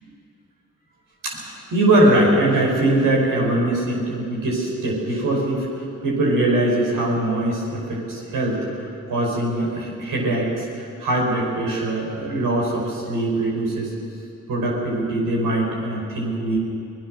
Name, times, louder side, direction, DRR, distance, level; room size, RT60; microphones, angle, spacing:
voice 1, 1.2-5.7 6.0-13.9 14.5-16.6, right 1 dB, 80° right, -2 dB, 5.4 m, -22 dB
23.5 x 18.5 x 6.4 m, 2.5 s
supercardioid pair, 50°, 32 cm